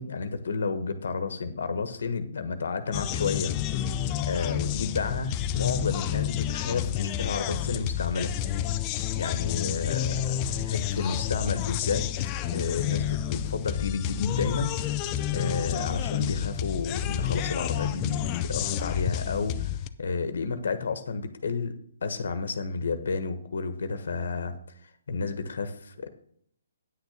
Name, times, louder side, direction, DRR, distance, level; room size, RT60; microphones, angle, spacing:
voice 1, 0.0-3.5 4.3-8.3 9.1-12.1 12.5-15.1 15.3-21.8 22.0-24.6 24.8-26.1, left 4 dB, 70° left, 10 dB, 1.3 m, -31 dB
sound 1, 2.9-19.9, left 11 dB, 20° left, 0.5 m, -30 dB
9.5 x 6.6 x 6.5 m, 0.65 s
hypercardioid pair, 160°, 0 cm